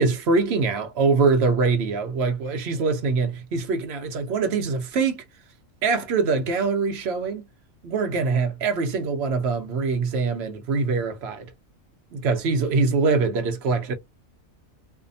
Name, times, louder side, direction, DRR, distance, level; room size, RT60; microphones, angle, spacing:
voice 1, 0.0-5.2 5.8-7.5 7.8-11.5 12.1-13.9, right 4 dB, 60° right, 0.7 m, -23 dB
2.7 x 2.1 x 2.5 m
omnidirectional pair, 1.4 m